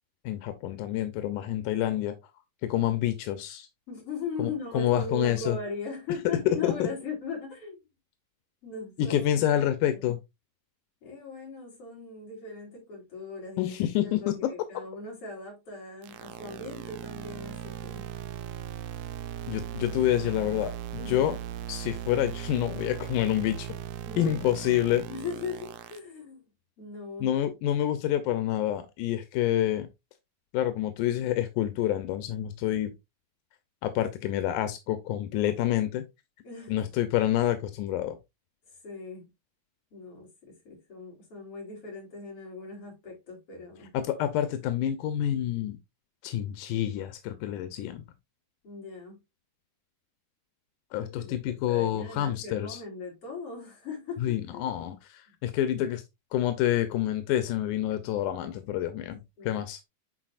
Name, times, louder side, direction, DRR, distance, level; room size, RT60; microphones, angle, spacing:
voice 1, 0.2-2.2 2.6-3.7 4.4-5.6 6.6-6.9 9.0-10.2 13.6-14.5 19.5-20.7 21.1-21.4 21.7-23.7 24.2-25.0 27.2-29.9 30.5-32.9 33.8-36.0 36.7-38.2 43.9-45.8 46.2-48.0 50.9-52.8 54.2-56.0 56.3-59.8, left 12 dB, 90° left, 2.3 m, -28 dB
voice 2, 3.9-7.8 8.6-10.1 11.0-13.7 14.0-18.1 20.9-21.3 24.0-24.4 25.1-26.4 26.8-27.3 36.4-36.8 38.8-39.3 39.9-43.9 48.6-49.2 51.0-54.7 55.7-55.8 59.4-59.6, left 4 dB, 45° left, 4.2 m, -39 dB
sound 1, 16.0-26.0, right 11 dB, 90° right, 1.4 m, -38 dB
10.5 x 4.1 x 2.4 m
omnidirectional pair, 3.5 m